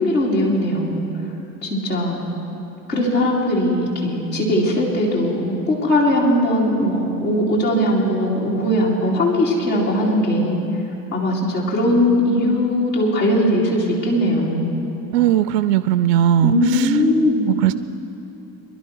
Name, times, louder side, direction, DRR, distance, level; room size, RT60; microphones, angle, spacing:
voice 1, 0.0-1.3 1.6-2.2 2.9-10.6 11.1-14.7 16.4-17.4, left 1 dB, 80° left, -5 dB, 3.1 m, -19 dB
voice 2, 15.1-17.0 17.4-17.7, right 11 dB, 70° right, 13 dB, 0.5 m, -18 dB
22.0 x 11.5 x 4.6 m, 2.8 s
figure-of-eight pair, 55°, 49 cm